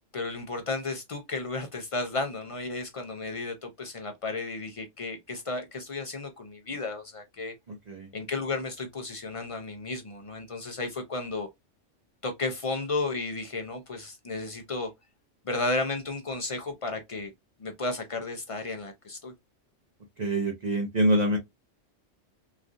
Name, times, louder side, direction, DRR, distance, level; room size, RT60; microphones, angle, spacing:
voice 1, 0.1-7.5 8.1-11.5 12.2-14.9 15.5-17.3 17.6-19.3, left 3 dB, 65° left, 0.3 m, -33 dB
voice 2, 7.7-8.1 20.2-21.4, right 1 dB, 45° right, 0.6 m, -25 dB
3.2 x 2.3 x 2.5 m
omnidirectional pair, 1.3 m